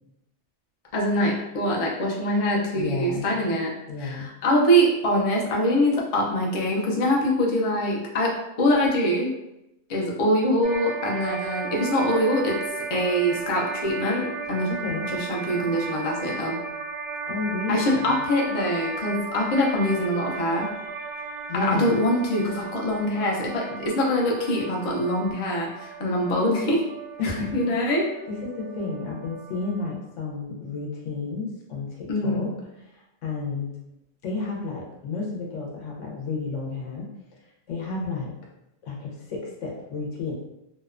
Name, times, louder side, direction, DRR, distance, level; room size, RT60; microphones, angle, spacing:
voice 1, 0.9-3.7 4.0-9.3 9.9-12.6 12.9-14.7 15.1-16.6 17.7-20.7 21.5-26.8 27.2-28.1 32.1-32.5, equal, 50° left, -2 dB, 0.4 m, -24 dB
voice 2, 2.7-3.3 3.9-4.3 14.7-15.1 17.3-18.2 21.5-21.9 27.2-27.6 28.3-32.5 32.9-33.8 34.2-37.1 37.7-38.3 38.8-40.3, left 4 dB, 90° left, -1 dB, 1.0 m, -31 dB
sound 1, 10.6-29.9, right 5 dB, 60° right, 0.5 m, -35 dB
2.8 x 2.1 x 2.4 m, 0.90 s
omnidirectional pair, 1.2 m